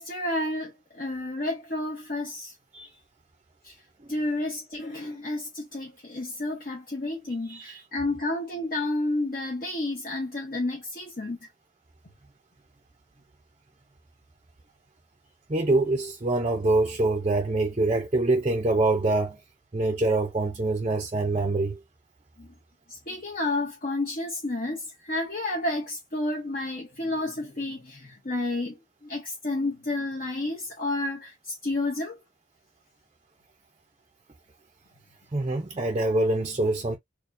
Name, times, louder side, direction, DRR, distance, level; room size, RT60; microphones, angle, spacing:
voice 1, 0.0-2.5 3.6-3.7 4.1-11.5 22.4-22.5 22.9-32.2, left 2 dB, 45° left, 1.0 m, -31 dB
voice 2, 7.5-7.8 15.5-19.4 19.7-21.8 35.3-37.0, right 2 dB, 30° right, 0.6 m, -25 dB
4.3 x 2.2 x 2.6 m
head